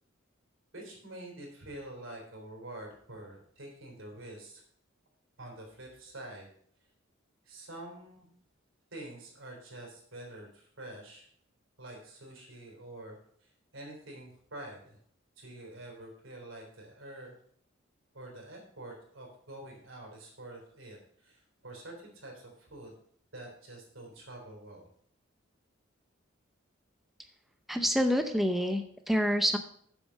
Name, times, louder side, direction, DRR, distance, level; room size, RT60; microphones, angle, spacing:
voice 1, 0.7-4.6 5.4-6.5 7.5-8.3 8.9-11.3 11.8-15.0 15.4-17.4 18.1-23.0 23.3-24.9, right 1 dB, 80° right, 0 dB, 3.6 m, -47 dB
voice 2, 27.7-29.6, equal, ahead, 6 dB, 0.6 m, -27 dB
7.4 x 7.3 x 6.3 m, 0.62 s
head